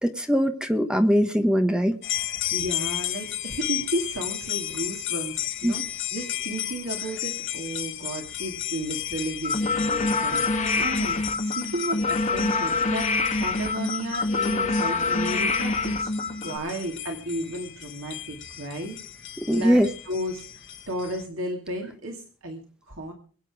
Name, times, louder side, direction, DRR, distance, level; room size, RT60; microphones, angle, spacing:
voice 1, 0.0-2.0 5.6-5.7 19.4-19.9, equal, 5° right, 7 dB, 1.2 m, -21 dB
sound 1, 2.0-21.3, left 12 dB, 60° left, 1.8 m, -34 dB
voice 2, 2.5-13.1 13.4-16.1 16.4-19.0 19.5-19.8 20.0-22.6 22.9-23.1, right 1 dB, 65° right, 2 dB, 2.5 m, -33 dB
sound 2, 9.4-16.6, left 3 dB, 35° left, 2.0 m, -25 dB
23.0 x 8.5 x 4.9 m, 0.41 s
head